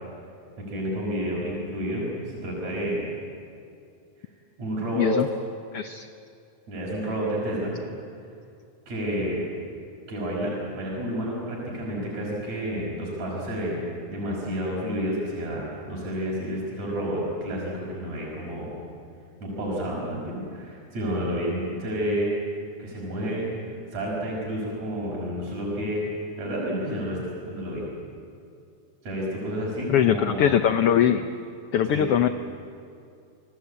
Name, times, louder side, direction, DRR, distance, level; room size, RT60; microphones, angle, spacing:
voice 1, 0.7-3.0 4.6-5.1 6.7-7.7 8.9-9.4 10.1-18.7 19.4-22.3 22.8-26.0 26.4-27.2 27.5-27.8 29.0-30.7 31.1-31.2 31.8-32.1, equal, 60° right, -4 dB, 7.0 m, -30 dB
voice 2, 5.7-6.1 29.9-31.2 31.7-32.3, left 10 dB, 80° left, 9 dB, 1.3 m, -21 dB
27.5 x 20.0 x 8.6 m, 2.5 s
omnidirectional pair, 3.6 m